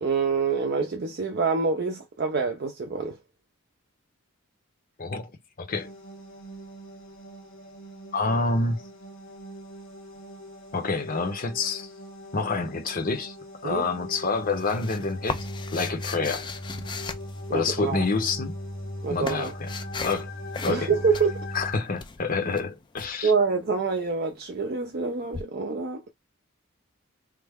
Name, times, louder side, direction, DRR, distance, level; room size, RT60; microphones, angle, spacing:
voice 1, 0.0-3.2 13.6-13.8 17.5-18.0 19.0-19.5 20.7-21.5 23.2-26.1, right 5 dB, 50° right, 0.5 m, -26 dB
voice 2, 5.0-5.3 5.6-5.9 8.1-8.9 10.7-11.9 12.3-13.4 13.6-15.4 15.7-16.5 17.5-18.5 19.1-19.7 20.0-20.3 20.6-20.9 21.5-23.3, left 3 dB, 45° left, 0.7 m, -27 dB
sound 1, 5.7-21.8, equal, 85° left, 1.3 m, -39 dB
sound 2, 14.1-18.0 18.7-20.3 20.5-20.9 21.1-23.1 25.3-25.4, left 5 dB, 20° left, 0.3 m, -37 dB
3.2 x 2.1 x 3.4 m
head